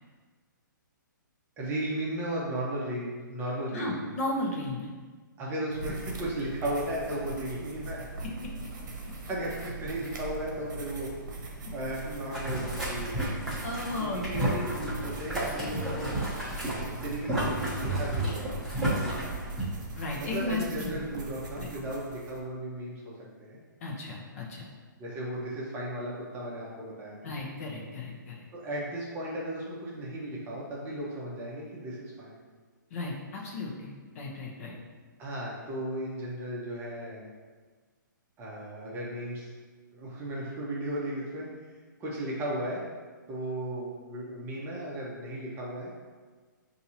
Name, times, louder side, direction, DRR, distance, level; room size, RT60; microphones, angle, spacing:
voice 1, 1.6-4.1 5.4-8.0 9.2-11.1 11.7-13.3 14.0-16.2 16.8-18.8 20.2-23.1 23.4-23.6 25.0-27.3 28.5-32.4 35.2-37.3 38.4-39.5 39.9-41.5 42.0-42.8 43.3-45.9, right 1 dB, 20° right, -5 dB, 0.8 m, -35 dB
voice 2, 3.7-4.9 8.2-8.5 13.6-14.5 20.0-21.0 21.6-21.7 23.8-24.7 27.2-28.4 32.9-34.7, left 2 dB, 45° left, -2 dB, 0.9 m, -35 dB
sound 1, 5.7-22.4, right 3 dB, 60° right, 0.9 m, -41 dB
Boiling, 12.3-19.6, right 1 dB, ahead, 1.1 m, -32 dB
5.6 x 2.7 x 2.8 m, 1.4 s
hypercardioid pair, 145°, 11 cm